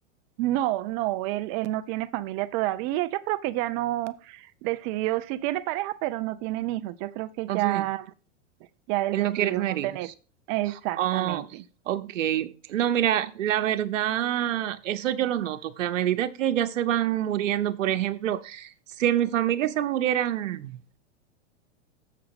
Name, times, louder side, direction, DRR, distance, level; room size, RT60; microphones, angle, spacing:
voice 1, 0.4-8.1 8.9-10.1 10.5-11.6, right 16 dB, 25° right, 0.3 m, -29 dB
voice 2, 7.5-7.9 9.1-10.1 11.0-11.4 11.9-20.8, right 11 dB, 85° right, 0.9 m, -26 dB
7.7 x 6.0 x 4.7 m
hypercardioid pair, 140°, 37 cm